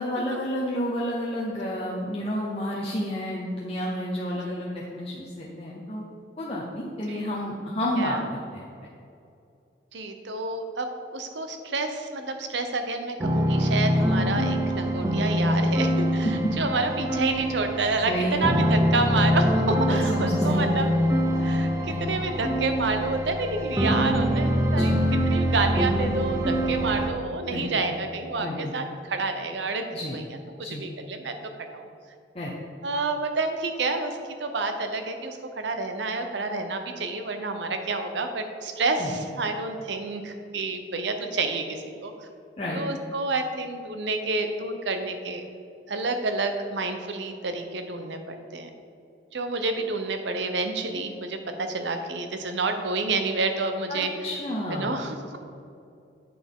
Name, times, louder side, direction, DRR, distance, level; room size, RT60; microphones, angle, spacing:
voice 1, 0.0-6.0 6.4-8.2 8.5-8.6 16.2-16.5 18.0-18.8 19.9-20.9 21.9-22.1 24.7-25.1 27.5-27.9 28.4-28.8 29.9-30.2 30.6-30.8 32.3-32.5 39.0-39.1 42.6-42.8 53.9-55.0, equal, 30° left, -5 dB, 0.7 m, -30 dB
voice 2, 9.9-20.9 21.3-25.0 25.3-30.2 30.6-31.3 31.6-31.8 32.8-42.1 42.7-45.4 45.9-48.7 49.3-54.1 54.7-55.4, right 3 dB, 75° right, 6 dB, 0.7 m, -29 dB
sound 1, 13.2-27.1, equal, 15° right, 0.6 m, -24 dB
8.5 x 6.0 x 3.6 m, 2.6 s
head